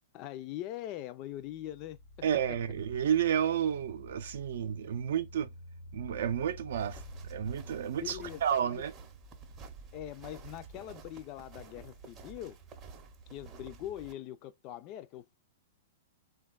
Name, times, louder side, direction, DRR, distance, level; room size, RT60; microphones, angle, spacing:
voice 1, 0.1-2.0 8.0-8.4 8.7-8.8 9.9-12.6 13.3-15.4, left 13 dB, 40° left, 0.3 m, -42 dB
sound 1, 1.5-14.1, left 1 dB, 75° left, 0.7 m, -51 dB
voice 2, 2.2-5.5 5.9-8.9, right 9 dB, 70° right, 0.4 m, -31 dB
sound 2, 6.7-14.1, right 5 dB, 30° right, 0.6 m, -51 dB
3.3 x 2.3 x 2.2 m
hypercardioid pair, 125°, 0 cm